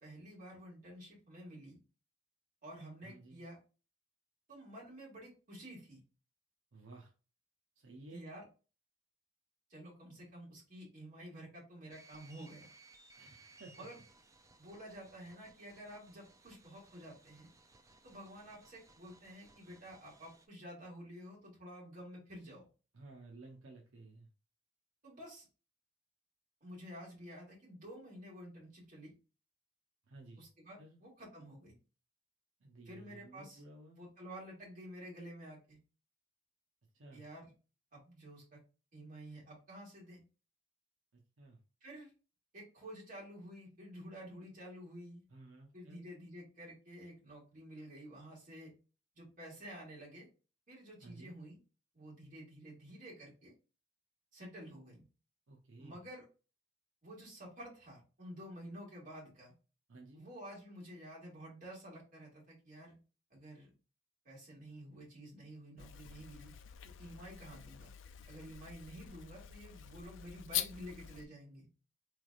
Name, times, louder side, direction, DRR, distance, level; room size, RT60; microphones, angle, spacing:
voice 1, 0.0-1.8 2.6-3.6 4.5-6.0 8.1-8.4 9.7-12.7 13.8-14.0 14.6-17.5 18.0-22.7 25.0-25.5 26.6-29.1 30.4-31.7 32.9-33.6 33.9-35.8 37.1-37.5 37.9-38.6 38.9-40.2 41.8-42.1 42.5-45.2 45.7-48.7 49.1-50.3 50.7-51.6 51.9-53.5 54.3-55.0 55.8-56.3 57.0-59.5 60.1-63.0 63.3-63.7 64.3-66.5 67.0-67.9 68.3-71.7, equal, 40° right, -4 dB, 2.0 m, -51 dB
voice 2, 3.0-3.4 6.7-7.1 7.8-8.3 13.2-13.9 22.9-24.3 30.1-30.5 30.8-31.0 32.6-34.1 36.9-37.2 41.1-41.6 45.3-46.1 51.0-51.4 55.5-56.0 59.9-60.3, right 2 dB, 70° right, 0 dB, 0.7 m, -55 dB
sound 1, 11.9-20.5, right 3 dB, 15° right, 0.3 m, -62 dB
sound 2, 65.8-71.3, left 11 dB, 70° left, 0.4 m, -44 dB
4.0 x 3.3 x 2.4 m, 0.34 s
head